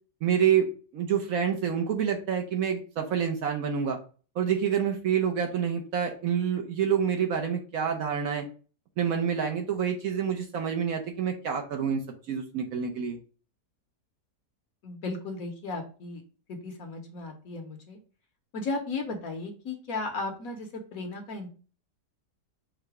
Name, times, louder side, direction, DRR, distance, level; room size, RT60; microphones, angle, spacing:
voice 1, 0.2-0.7 0.9-4.0 4.3-8.4 9.0-12.0 12.3-13.2, right 8 dB, 65° right, 3 dB, 1.0 m, -27 dB
voice 2, 14.8-16.2 16.5-18.0 18.5-21.5, left 3 dB, 60° left, 4 dB, 1.2 m, -35 dB
4.7 x 2.1 x 4.6 m, 0.38 s
omnidirectional pair, 1.8 m